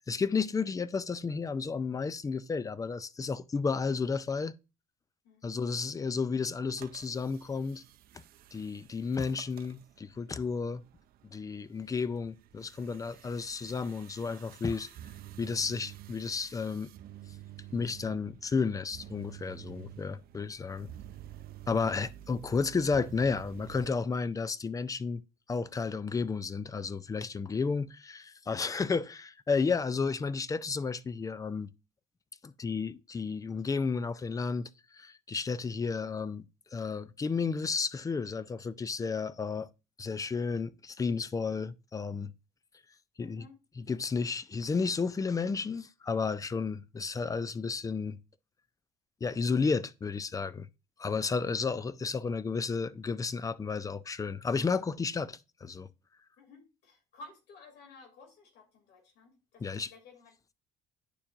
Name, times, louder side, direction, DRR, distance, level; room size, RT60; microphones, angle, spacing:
voice 1, 0.1-4.6 5.4-7.8 8.5-10.8 11.3-14.9 15.4-16.9 17.7-20.9 21.7-25.2 25.5-31.7 32.4-36.5 36.7-39.7 40.0-42.3 43.2-43.5 43.8-48.2 49.2-50.7 51.0-55.9 59.6-59.9, left 5 dB, 20° left, 0.4 m, -32 dB
sound 1, 6.7-23.9, right 13 dB, 60° right, 0.5 m, -50 dB
voice 2, 43.2-43.6 56.4-59.6 59.9-60.5, left 3 dB, 80° left, 2.6 m, -54 dB
9.8 x 4.4 x 2.5 m
cardioid pair, 110°, 17 cm